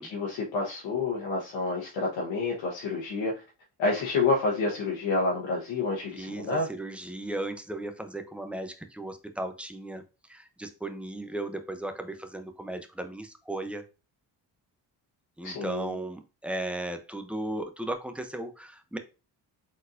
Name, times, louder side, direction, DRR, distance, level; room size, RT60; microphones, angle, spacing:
voice 1, 0.0-3.4 3.8-6.7 15.4-15.9, left 3 dB, 90° left, -4 dB, 1.1 m, -29 dB
voice 2, 6.2-10.0 10.3-13.8 15.4-19.0, right 1 dB, 5° right, 7 dB, 0.6 m, -36 dB
4.2 x 4.0 x 2.6 m, 0.30 s
cardioid pair, 80°, 44 cm